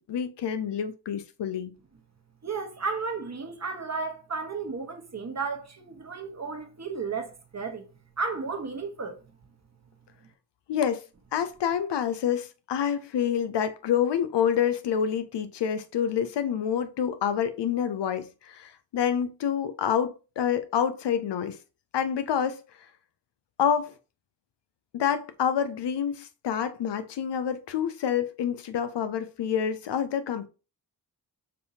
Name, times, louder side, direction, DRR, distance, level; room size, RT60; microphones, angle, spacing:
voice 1, 0.1-1.7 10.7-11.0 11.3-21.6 21.9-22.6 23.6-23.9 24.9-30.5, left 8 dB, 75° left, 0.6 m, -27 dB
voice 2, 2.4-7.8 8.2-9.2, right 4 dB, 40° right, 1.1 m, -33 dB
5.3 x 2.8 x 2.8 m
cardioid pair, 50°, 42 cm